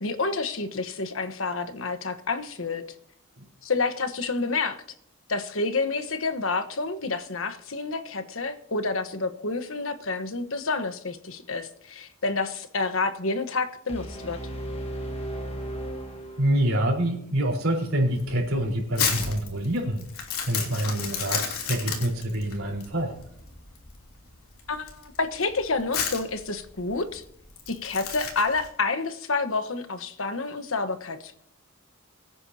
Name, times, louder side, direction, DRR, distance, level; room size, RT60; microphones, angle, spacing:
voice 1, 0.0-2.8 3.6-4.8 5.3-14.4 24.7-27.2 27.7-31.5, left 3 dB, 65° left, 9 dB, 1.2 m, -29 dB
sound 1, 13.9-16.9, right 1 dB, 25° left, 1.6 m, -35 dB
voice 2, 16.4-20.0 20.5-23.2, right 1 dB, 70° right, -2 dB, 4.2 m, -26 dB
Crumpling crinkling, 18.2-28.7, left 6 dB, 85° left, 3.2 m, -33 dB
22.5 x 9.7 x 2.9 m, 0.71 s
head